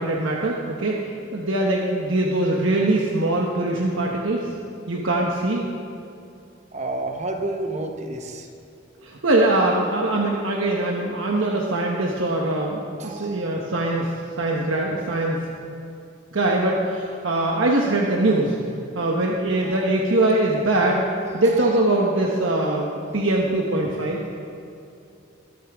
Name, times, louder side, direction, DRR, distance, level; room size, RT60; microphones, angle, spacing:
voice 1, 0.0-4.5 4.9-5.7 9.0-15.4 16.3-18.6 18.9-21.0 21.3-24.2, right 2 dB, 80° right, -1 dB, 1.1 m, -22 dB
voice 2, 6.7-8.5 13.0-13.8 19.6-19.9 21.2-22.0 22.4-22.6, right 2 dB, 35° right, 4 dB, 1.0 m, -32 dB
22.0 x 8.7 x 3.5 m, 2.7 s
head